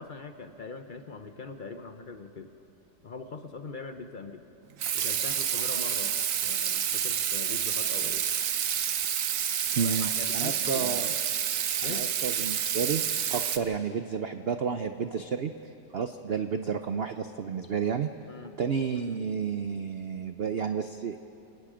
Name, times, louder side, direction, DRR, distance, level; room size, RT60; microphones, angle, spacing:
voice 1, 0.0-2.5 3.0-4.4 4.9-8.2 9.7-11.2 11.8-12.1 18.3-18.5, left 4 dB, 50° left, 7 dB, 0.6 m, -42 dB
Water tap faucet / Sink (filling or washing), 4.8-13.6, right 9 dB, 60° right, 1.1 m, -29 dB
voice 2, 9.8-11.1 11.8-13.0 13.3-15.5 15.9-18.1 18.6-21.2, right 6 dB, 85° right, 8 dB, 0.5 m, -31 dB
27.0 x 19.0 x 5.0 m, 2.7 s
omnidirectional pair, 1.9 m